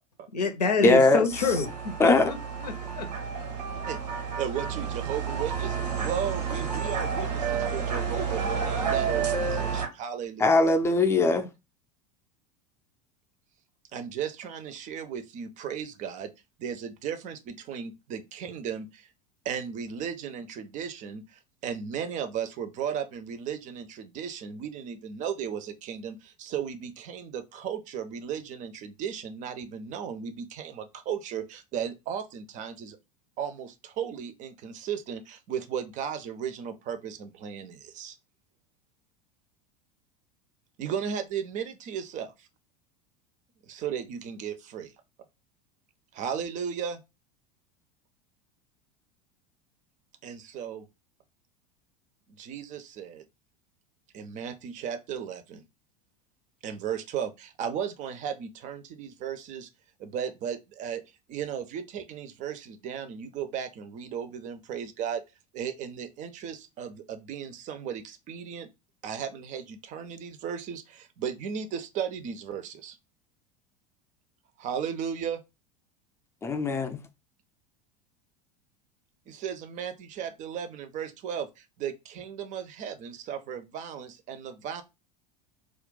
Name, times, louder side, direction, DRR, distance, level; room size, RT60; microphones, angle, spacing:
voice 1, 0.3-3.1, left 4 dB, 80° left, 0.6 m, -28 dB
voice 2, 0.8-1.2 2.0-2.3 10.4-11.5 76.4-77.0, left 2 dB, 15° left, 0.5 m, -21 dB
sound 1, 1.3-9.9, right 6 dB, 80° right, 0.7 m, -30 dB
voice 3, 4.4-10.6 13.9-16.3 16.6-19.1 19.4-33.0 33.4-38.2 40.8-42.5 43.7-44.9 46.1-47.0 50.2-50.9 52.4-53.2 54.1-55.6 56.6-59.7 60.0-61.0 61.3-65.2 65.5-68.7 69.0-73.0 74.6-75.4 79.3-84.8, right 8 dB, 40° right, 0.5 m, -35 dB
2.4 x 2.2 x 3.7 m
figure-of-eight pair, 80°, 21 cm